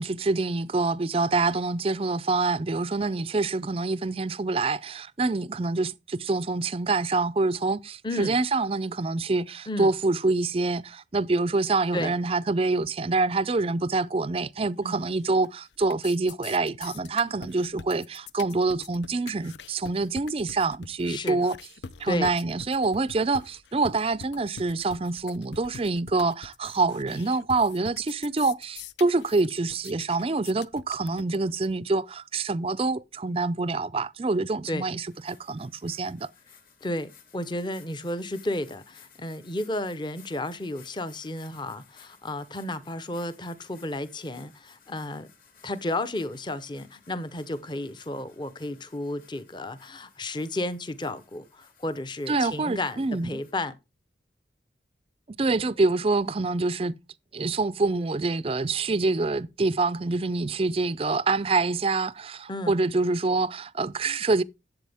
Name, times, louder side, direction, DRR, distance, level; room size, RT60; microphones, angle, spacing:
voice 1, 0.0-21.6 22.0-36.3 52.3-53.4 55.3-57.0 57.3-64.4, right 3 dB, 30° right, 0.4 m, -26 dB
voice 2, 8.0-8.4 9.7-9.9 11.9-12.1 14.8-15.0 21.1-21.4 22.0-22.3 34.7-34.8 36.8-45.3 45.6-53.7 62.5-62.8, left 1 dB, 25° left, 0.8 m, -32 dB
sound 1, 15.0-15.5 15.7-31.7, left 6 dB, 75° left, 0.6 m, -44 dB
sound 2, 35.0-53.5, left 7 dB, 50° left, 2.8 m, -58 dB
11.5 x 7.9 x 3.5 m
head